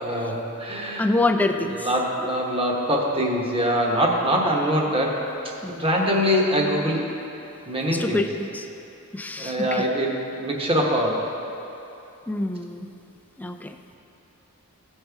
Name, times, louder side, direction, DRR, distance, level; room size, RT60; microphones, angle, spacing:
voice 1, 0.0-1.1 1.8-5.2 5.7-7.1 7.7-8.2 9.4-11.3, equal, 25° right, -1 dB, 1.1 m, -23 dB
voice 2, 1.0-1.9 5.6-6.2 7.9-8.7 9.1-9.9 12.3-12.9 13.4-13.8, left 2 dB, 5° left, 5 dB, 0.3 m, -26 dB
15.5 x 5.4 x 3.5 m, 2.9 s
head